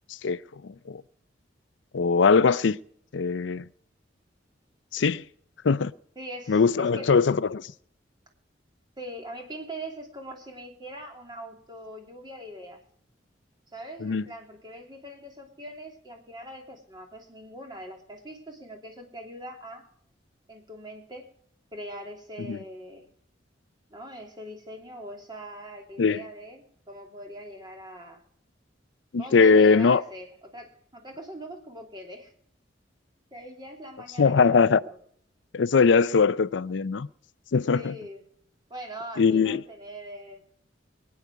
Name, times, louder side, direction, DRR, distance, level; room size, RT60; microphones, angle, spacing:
voice 1, 1.9-2.8 3.1-3.6 4.9-5.2 5.6-5.9 6.5-7.7 14.0-14.2 22.5-22.6 26.0-26.2 29.1-30.0 34.2-34.8 35.5-37.1 37.5-37.9 39.2-39.6, left 5 dB, 80° left, 0.5 m, -21 dB
voice 2, 6.2-7.1 9.0-12.8 13.7-19.9 20.5-21.3 21.7-23.1 23.9-28.2 29.2-32.3 33.3-35.0 37.7-38.2 38.7-40.4, right 1 dB, 25° right, 2.8 m, -42 dB
22.5 x 9.6 x 4.7 m
head